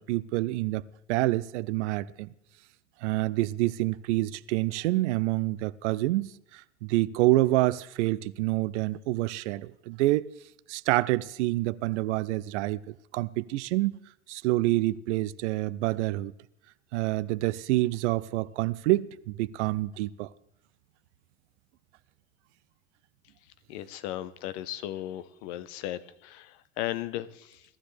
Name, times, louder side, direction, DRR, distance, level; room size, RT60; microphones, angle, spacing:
voice 1, 0.0-2.3 3.0-10.3 10.7-14.0 14.3-16.3 16.9-20.3, right 17 dB, 65° right, 0.6 m, -27 dB
voice 2, 23.7-27.6, left 13 dB, 60° left, 0.9 m, -36 dB
17.5 x 13.0 x 3.3 m
hypercardioid pair, 75°, 38 cm